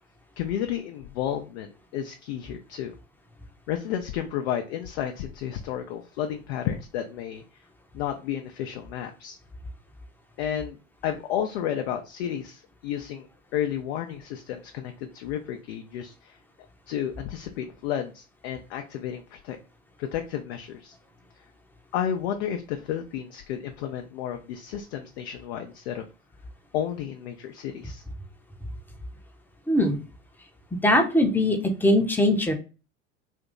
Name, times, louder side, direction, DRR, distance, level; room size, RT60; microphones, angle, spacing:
voice 1, 0.4-2.9 3.7-7.4 7.9-9.4 10.4-10.8 11.0-13.3 13.5-16.4 16.9-19.6 20.0-21.0 21.9-26.0 26.7-28.0, left 10 dB, 55° left, 4 dB, 0.5 m, -32 dB
voice 2, 29.7-30.0 30.8-32.5, left 1 dB, 5° left, 3 dB, 0.7 m, -21 dB
2.8 x 2.6 x 3.6 m, 0.32 s
figure-of-eight pair, 70°, 38 cm